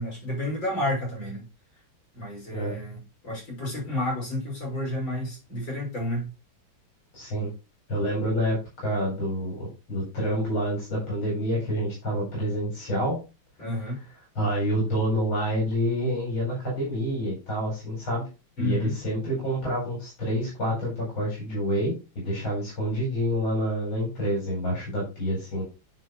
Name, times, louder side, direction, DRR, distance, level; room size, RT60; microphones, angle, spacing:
voice 1, 0.0-1.5 2.1-6.3 13.6-14.0 18.6-19.0, left 1 dB, 70° left, 6.9 m, -30 dB
voice 2, 7.1-7.5 7.9-13.2 14.4-18.3 18.6-25.6, equal, 85° left, 5.3 m, -28 dB
10.0 x 6.4 x 3.2 m
omnidirectional pair, 2.2 m